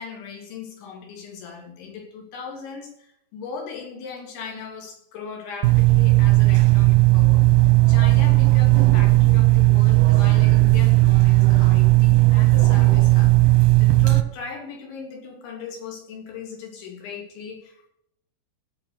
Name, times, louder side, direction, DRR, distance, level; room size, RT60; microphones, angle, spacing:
voice 1, 0.0-17.9, left 5 dB, 80° left, 0 dB, 5.2 m, -38 dB
sound 1, 5.6-14.2, right 19 dB, 80° right, 2.3 m, -16 dB
17.0 x 5.9 x 6.6 m, 0.75 s
omnidirectional pair, 5.2 m